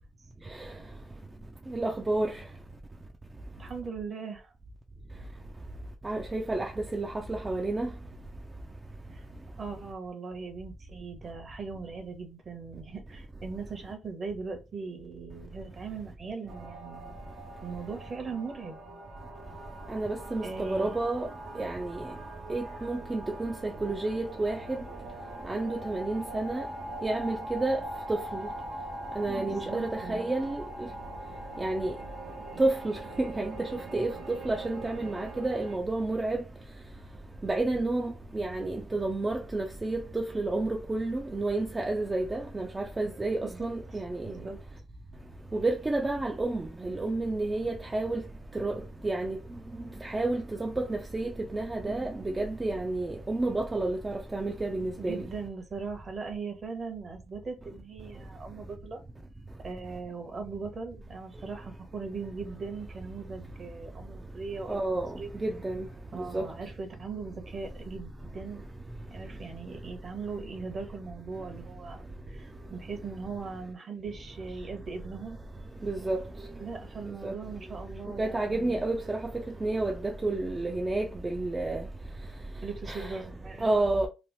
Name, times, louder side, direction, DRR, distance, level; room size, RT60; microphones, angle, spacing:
voice 1, 1.7-2.4 6.0-7.9 19.9-21.3 21.6-22.1 22.5-24.8 25.4-26.7 27.0-27.8 28.1-28.5 29.2-30.9 31.6-31.9 32.6-36.4 37.4-44.3 45.5-48.2 48.5-49.4 50.0-55.3 64.7-65.9 66.1-66.5 75.8-76.2 77.0-77.3 78.2-79.3 79.6-81.9 82.9-83.2 83.6-84.1, right 2 dB, 20° right, 0.4 m, -30 dB
voice 2, 3.6-4.5 9.1-9.2 9.6-17.0 17.6-18.8 20.4-20.9 29.5-30.3 43.4-43.7 44.2-44.6 55.0-59.0 59.6-65.3 66.1-68.7 69.1-75.4 76.6-78.8 82.6-83.7, right 4 dB, 45° right, 0.9 m, -39 dB
sound 1, 16.5-35.8, right 1 dB, 75° right, 0.9 m, -42 dB
3.0 x 2.0 x 3.0 m
cardioid pair, 90°, 0 cm